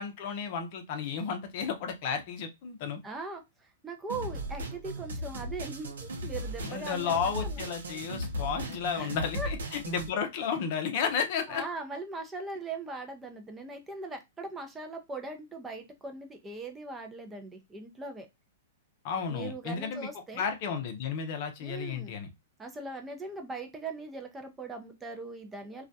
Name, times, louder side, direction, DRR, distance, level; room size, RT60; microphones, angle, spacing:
voice 1, 0.0-3.0 6.7-11.6 19.0-20.1 20.3-22.3, left 6 dB, 50° left, 6 dB, 0.6 m, -33 dB
voice 2, 3.0-7.6 8.9-9.5 10.1-10.2 11.5-18.3 19.3-20.5 21.6-22.1 22.6-25.9, right 3 dB, 15° right, 4 dB, 0.5 m, -40 dB
sound 1, 4.1-10.1, equal, 80° right, 0.6 m, -37 dB
2.3 x 2.1 x 2.6 m, 0.21 s
hypercardioid pair, 125°, 0 cm